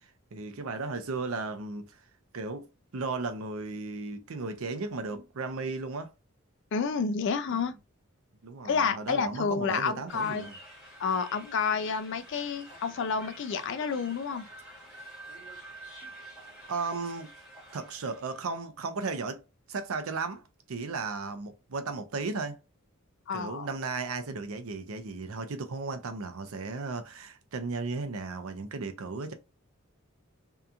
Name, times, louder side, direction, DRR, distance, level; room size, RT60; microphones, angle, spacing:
voice 1, 0.3-2.0 2.3-2.7 2.9-6.1 7.5-7.6 8.4-10.5 16.7-17.3 17.7-19.4 19.7-20.4 20.7-22.6 23.3-29.3, right 3 dB, 70° right, 0.5 m, -35 dB
voice 2, 6.7-7.7 8.6-10.5 11.0-14.5 23.3-23.7, left 5 dB, 55° left, 0.3 m, -29 dB
sound 1, 10.1-18.5, right 1 dB, ahead, 1.1 m, -48 dB
2.8 x 2.3 x 2.4 m
head